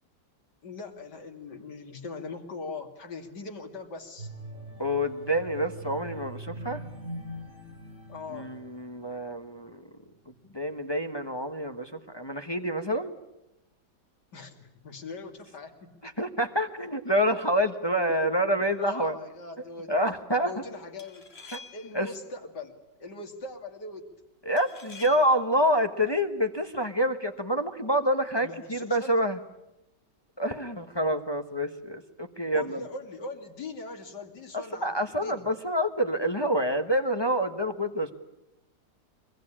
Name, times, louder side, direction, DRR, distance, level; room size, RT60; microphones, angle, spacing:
voice 1, 0.6-4.3 8.1-8.5 14.3-16.1 18.5-20.0 20.4-21.3 21.7-22.7 23.0-24.1 28.4-29.1 32.5-34.9 35.2-35.4, left 3 dB, 85° left, 4 dB, 3.1 m, -41 dB
sound 1, 4.2-9.4 9.9-10.1, right 1 dB, 50° right, 4.7 m, -42 dB
voice 2, 4.8-6.8 8.3-9.8 10.5-13.1 16.0-19.1 19.9-20.5 21.5-21.6 21.9-22.1 24.4-29.4 30.4-32.8 34.5-38.1, equal, 15° left, 6 dB, 1.1 m, -27 dB
sound 2, 18.6-18.9 21.0-22.1 24.6-25.5, left 3 dB, 35° left, 2.2 m, -48 dB
24.0 x 23.0 x 10.0 m, 0.92 s
omnidirectional pair, 1.8 m